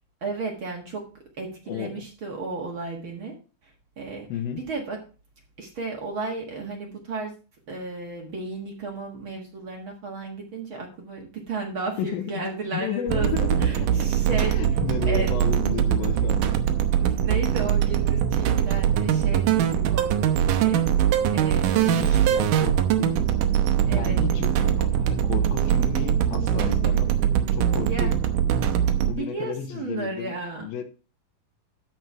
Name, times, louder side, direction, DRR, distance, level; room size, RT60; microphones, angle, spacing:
voice 1, 0.2-1.1 1.4-3.4 3.6-3.7 4.0-4.3 4.7-5.0 5.6-7.3 7.7-14.5 15.1-15.3 17.0-21.1 21.3-22.3 23.9-24.2 27.8-28.1 28.9-30.7, right 3 dB, 45° right, 2.0 m, -34 dB
voice 2, 1.7-2.0 4.3-4.6 12.0-14.1 14.4-16.6 21.8-23.3 23.9-27.1 27.5-28.2 29.0-30.3 30.6-30.8, left 10 dB, 90° left, 2.8 m, -33 dB
sound 1, 13.1-29.1, right 10 dB, 75° right, 2.3 m, -22 dB
13.0 x 4.6 x 4.7 m
omnidirectional pair, 4.0 m